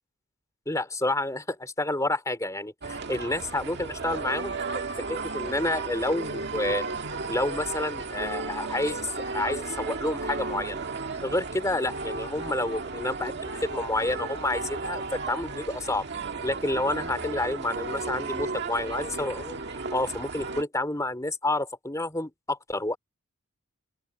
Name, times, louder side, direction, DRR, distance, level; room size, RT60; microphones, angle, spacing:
voice 1, 0.6-6.8 7.3-10.8 11.2-16.0 16.4-19.6 19.9-23.0, left 2 dB, 15° left, 3.4 m, -29 dB
sound 1, 2.8-20.6, right 3 dB, 50° right, 1.8 m, -34 dB
open air
head